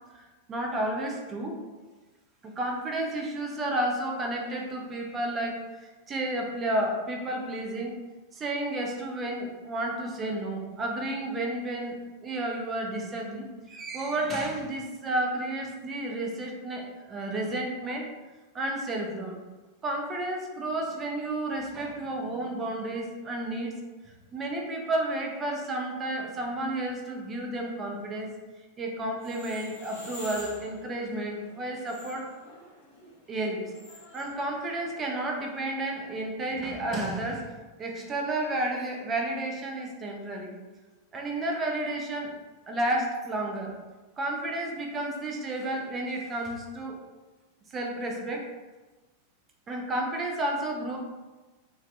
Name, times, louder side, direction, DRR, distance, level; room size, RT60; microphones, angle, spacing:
voice 1, 0.1-1.6 2.4-7.9 8.3-18.1 18.5-19.4 19.8-23.7 24.0-28.3 28.8-32.3 33.3-33.6 34.1-37.5 37.8-40.5 41.1-42.3 42.7-43.8 44.2-47.0 47.7-48.5 49.7-51.0, right 1 dB, 25° right, 1 dB, 0.5 m, -31 dB
sound 1, 29.1-35.6, left 1 dB, 50° left, 0.9 m, -48 dB
2.5 x 2.3 x 2.3 m, 1.2 s
figure-of-eight pair, 90°, 0 cm